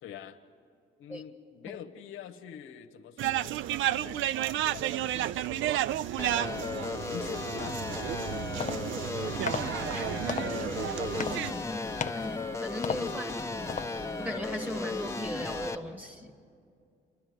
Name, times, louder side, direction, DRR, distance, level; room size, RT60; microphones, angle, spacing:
voice 1, 0.0-0.4 1.0-5.8 6.7-8.6 13.0-13.4, left 9 dB, 85° left, 6 dB, 1.0 m, -46 dB
sound 1, 3.2-11.5, right 13 dB, 75° right, 0.4 m, -32 dB
sound 2, 6.2-15.8, left 3 dB, 15° left, 1.1 m, -35 dB
sound 3, 8.2-14.3, left 7 dB, 40° left, 0.7 m, -39 dB
voice 2, 10.4-11.9 12.2-13.4 13.6-13.7 14.2-16.3, left 1 dB, 5° right, 6 dB, 1.9 m, -38 dB
29.0 x 11.5 x 9.5 m, 2.3 s
cardioid pair, 90°, 20 cm